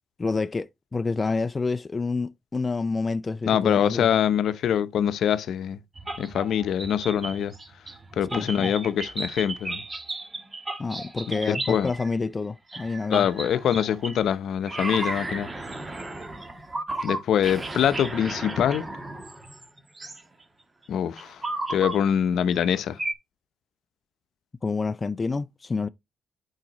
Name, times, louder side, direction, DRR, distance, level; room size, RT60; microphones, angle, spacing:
voice 1, 0.2-4.1 8.3-8.7 10.8-13.3 24.6-25.9, left 4 dB, 30° left, 0.3 m, -28 dB
voice 2, 3.5-5.8 6.2-7.5 8.2-9.8 11.3-11.9 13.1-15.5 17.0-18.9 20.9-21.4 21.7-23.0, left 9 dB, 70° left, 0.7 m, -24 dB
sound 1, 6.0-12.1 12.7-14.3 14.6-20.2 21.2-22.0 22.6-22.7 23.0-23.1, right 2 dB, 25° right, 1.3 m, -34 dB
9.0 x 4.8 x 3.0 m
cardioid pair, 90°, 0 cm